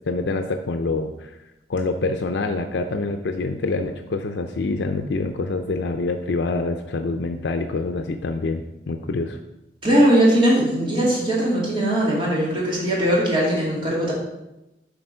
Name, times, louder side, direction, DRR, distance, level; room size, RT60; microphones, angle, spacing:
voice 1, 0.1-1.4 1.7-9.4, left 3 dB, 80° left, 6 dB, 0.5 m, -26 dB
voice 2, 9.8-14.1, right 1 dB, 30° right, -5 dB, 2.4 m, -19 dB
7.8 x 4.3 x 5.5 m, 0.95 s
head